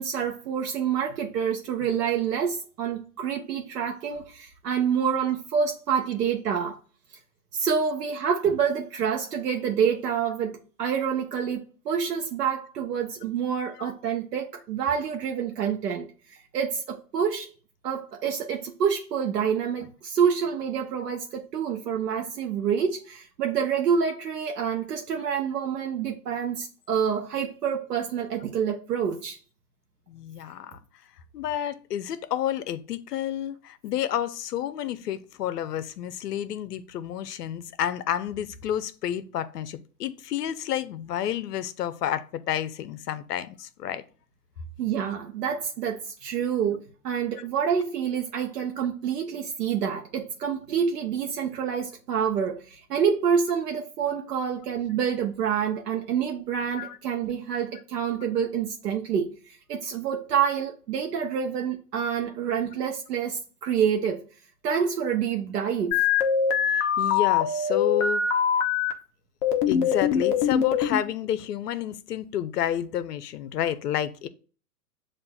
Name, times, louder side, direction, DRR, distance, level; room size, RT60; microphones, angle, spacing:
voice 1, 0.0-6.8 7.5-17.5 17.8-29.4 44.8-64.2 64.6-66.0, right 7 dB, 80° right, 0.8 m, -27 dB
voice 2, 30.1-30.8 31.3-44.0 56.8-57.0 66.7-68.2 69.7-74.3, left 10 dB, 75° left, 0.6 m, -30 dB
sound 1, 65.9-68.9 69.4-71.0, left 7 dB, 30° left, 0.6 m, -23 dB
7.4 x 2.5 x 2.3 m
hypercardioid pair, 120°, 47 cm